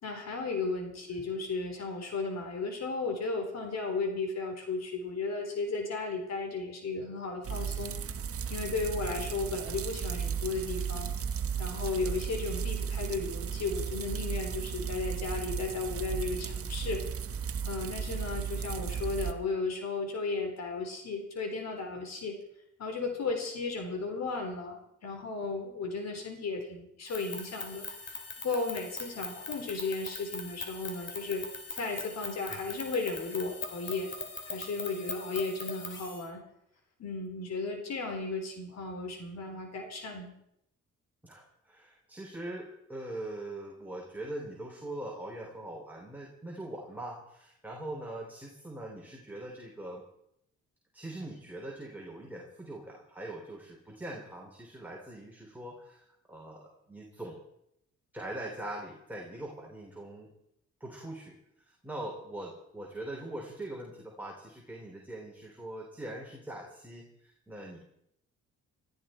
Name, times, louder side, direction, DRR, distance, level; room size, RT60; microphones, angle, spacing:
voice 1, 0.0-7.9 8.3-11.1 11.6-17.0 17.6-22.4 22.8-31.5 31.7-34.1 34.5-36.4 37.0-40.3, left 3 dB, 60° left, 3 dB, 4.1 m, -35 dB
sound 1, 7.4-19.3, right 7 dB, 50° right, 1.3 m, -35 dB
sound 2, 27.1-36.2, left 4 dB, 40° left, 2.9 m, -41 dB
voice 2, 41.2-50.0 50.9-57.4 58.1-60.3 60.8-67.8, right 1 dB, 5° right, -1 dB, 3.6 m, -42 dB
21.0 x 14.0 x 4.5 m, 0.77 s
cardioid pair, 90°, 30 cm